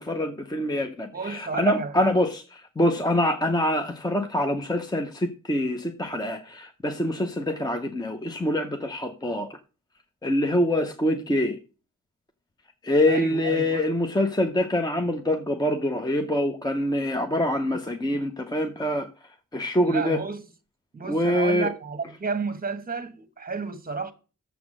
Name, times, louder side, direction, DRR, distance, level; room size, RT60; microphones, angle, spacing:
voice 1, 0.0-2.4 2.8-9.6 10.2-11.6 12.8-19.1 19.5-20.2 21.1-21.7, left 1 dB, 15° left, 0.6 m, -25 dB
voice 2, 1.1-2.1 13.1-13.9 19.8-20.4 20.9-24.1, right 4 dB, 30° right, 1.1 m, -32 dB
7.1 x 5.8 x 6.2 m
wide cardioid pair, 120°, 32 cm